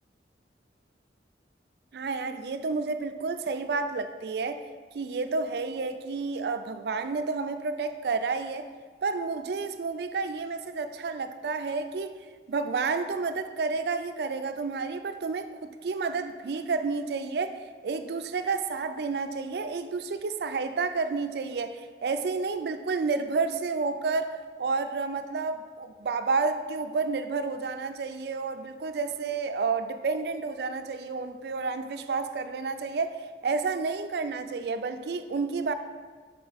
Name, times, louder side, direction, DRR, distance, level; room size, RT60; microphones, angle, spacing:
voice 1, 1.9-4.6 4.9-8.7 9.0-12.1 12.5-17.6 17.8-33.2 33.4-35.7, right 4 dB, 70° right, 9 dB, 0.4 m, -30 dB
5.8 x 4.6 x 4.0 m, 1.5 s
head